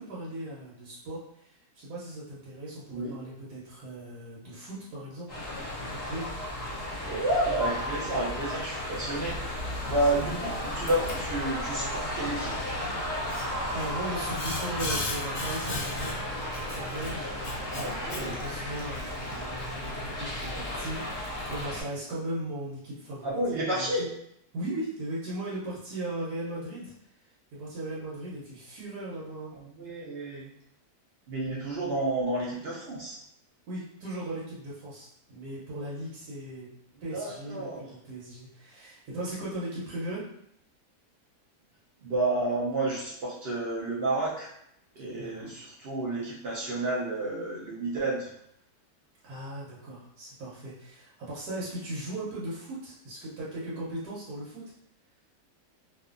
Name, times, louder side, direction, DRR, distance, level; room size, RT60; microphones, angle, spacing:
voice 1, 0.0-5.4 5.8-6.3 9.8-10.1 13.3-23.4 23.7-24.1 24.5-27.1 27.5-29.5 33.7-36.7 37.0-40.3 45.2-45.5 49.2-54.7, right 1 dB, 80° right, -8 dB, 1.3 m, -38 dB
sound 1, 5.3-21.8, left 1 dB, 35° left, 0.8 m, -35 dB
Boiling, 5.4-21.7, left 1 dB, 85° left, 0.5 m, -40 dB
voice 2, 7.1-9.4 9.8-12.6 17.7-18.4 23.2-24.0 29.8-30.5 31.3-33.1 37.1-37.8 42.0-44.5 45.0-48.3, right 2 dB, 65° right, -6 dB, 0.6 m, -30 dB
2.6 x 2.4 x 2.4 m, 0.72 s
omnidirectional pair, 1.7 m